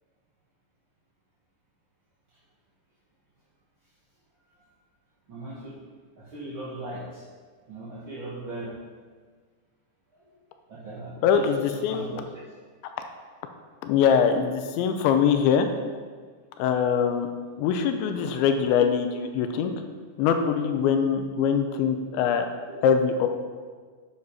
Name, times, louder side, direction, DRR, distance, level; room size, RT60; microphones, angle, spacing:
voice 1, 5.3-5.8 6.2-7.2 7.6-8.8 10.1-10.2 10.7-12.4, right 1 dB, 55° right, -9 dB, 1.4 m, -39 dB
voice 2, 11.2-12.1 13.8-15.7 16.6-17.3 17.6-19.7 20.2-22.5 22.8-23.3, left 7 dB, 90° left, 6 dB, 3.1 m, -23 dB
9.8 x 7.8 x 4.9 m, 1.5 s
omnidirectional pair, 5.2 m